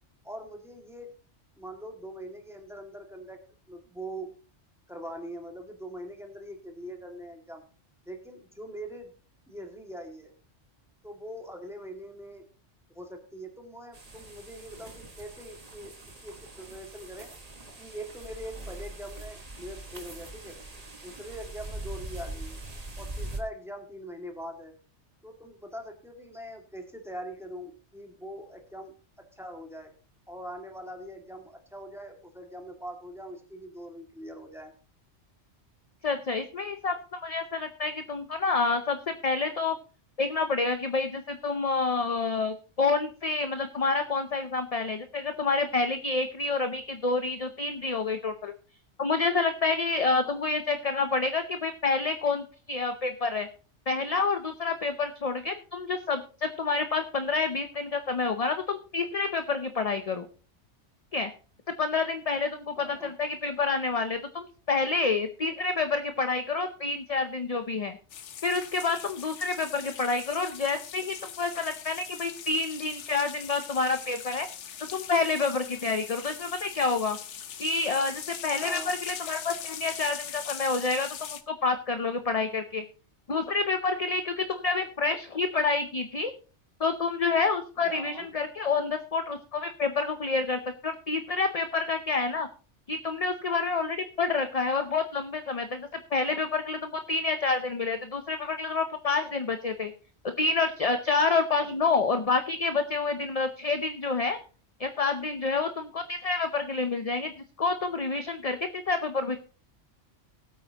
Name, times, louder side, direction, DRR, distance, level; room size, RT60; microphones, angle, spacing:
voice 1, 0.2-1.1 1.6-3.4 3.7-4.3 4.9-7.6 8.1-9.1 9.5-10.3 11.0-12.5 12.9-15.9 16.2-17.3 17.8-20.6 21.0-22.6 23.0-24.7 25.2-29.9 30.3-34.7 50.2-50.4 62.8-63.1 78.6-78.9 87.8-88.3, equal, ahead, 3 dB, 2.1 m, -42 dB
sound 1, 13.9-23.4, right 2 dB, 35° right, 1.5 m, -42 dB
voice 2, 36.0-39.8 40.2-48.5 49.0-53.5 53.9-60.3 61.1-61.3 61.7-68.0 68.4-74.5 74.9-77.2 77.6-82.8 83.3-86.3 86.8-92.5 92.9-99.9 100.2-104.4 104.8-109.4, left 4 dB, 35° left, 8 dB, 0.7 m, -28 dB
sound 2, 68.1-81.4, left 9 dB, 80° left, 1.1 m, -41 dB
19.5 x 8.6 x 2.9 m, 0.37 s
omnidirectional pair, 1.2 m